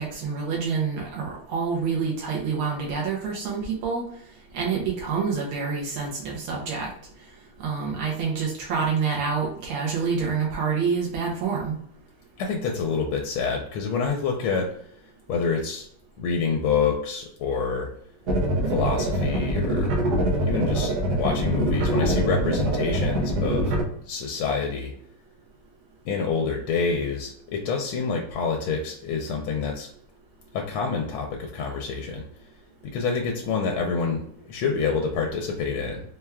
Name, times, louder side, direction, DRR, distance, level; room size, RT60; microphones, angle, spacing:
voice 1, 0.0-4.0 4.5-6.9 7.6-11.8, right 5 dB, 80° right, -2 dB, 1.6 m, -27 dB
voice 2, 12.4-14.7 15.3-15.9 16.2-17.9 18.7-20.0 20.4-23.7 24.1-24.9 26.1-29.9 30.5-32.2 32.9-36.0, left 5 dB, 85° left, 2 dB, 1.5 m, -27 dB
sound 1, 18.3-23.8, right 1 dB, 65° right, 1.1 m, -24 dB
4.4 x 2.3 x 3.3 m, 0.64 s
omnidirectional pair, 2.3 m